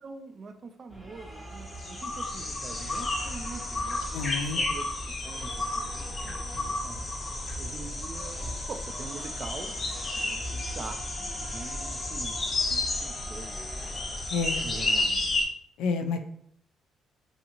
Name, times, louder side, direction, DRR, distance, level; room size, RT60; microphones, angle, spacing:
voice 1, 0.0-4.1 4.6-4.9 5.2-7.1 7.6-14.0 14.6-15.4, right 4 dB, 45° right, 7 dB, 0.3 m, -44 dB
sound 1, 0.9-15.1, equal, ahead, 0.7 m, -44 dB
sound 2, 1.6-15.4, left 2 dB, 40° left, 0.6 m, -32 dB
voice 2, 4.1-4.6 14.3-14.7 15.8-16.2, left 4 dB, 85° left, 7 dB, 0.3 m, -29 dB
2.7 x 2.7 x 2.5 m, 0.67 s
cardioid pair, 85°, 0 cm